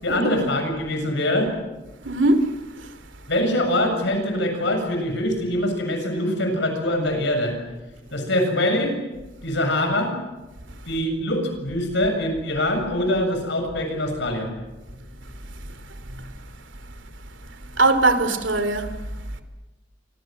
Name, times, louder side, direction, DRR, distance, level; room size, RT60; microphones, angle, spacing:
voice 1, 0.0-1.5 3.3-7.5 8.1-8.9 9.4-10.1 10.9-14.5, left 1 dB, 65° left, 7.4 m, -23 dB
voice 2, 2.0-2.5 2.8-2.9 17.8-18.9, right 2 dB, 75° right, 2.8 m, -20 dB
28.0 x 24.5 x 7.9 m
head